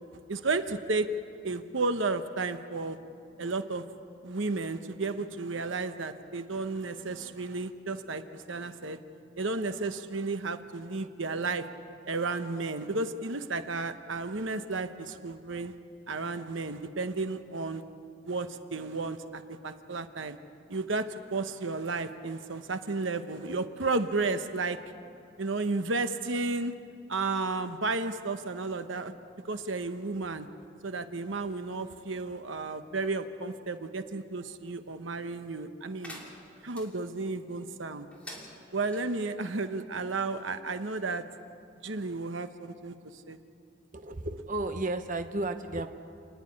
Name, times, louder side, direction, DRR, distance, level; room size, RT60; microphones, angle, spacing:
voice 1, 0.3-1.1 1.4-3.0 3.4-3.8 4.2-9.0 9.4-11.7 12.1-15.7 16.1-17.8 18.2-20.4 20.7-24.8 25.4-26.7 27.1-29.1 29.5-30.5 30.8-36.2 36.6-38.1 38.7-41.2 41.8-43.4, right 3 dB, 80° right, 9 dB, 1.0 m, -33 dB
sound 1, 36.0-36.9 38.1-39.0, left 1 dB, 5° left, 3.3 m, -46 dB
voice 2, 43.9-45.9, right 2 dB, 40° right, 7 dB, 0.9 m, -33 dB
29.0 x 10.5 x 9.9 m, 2.7 s
head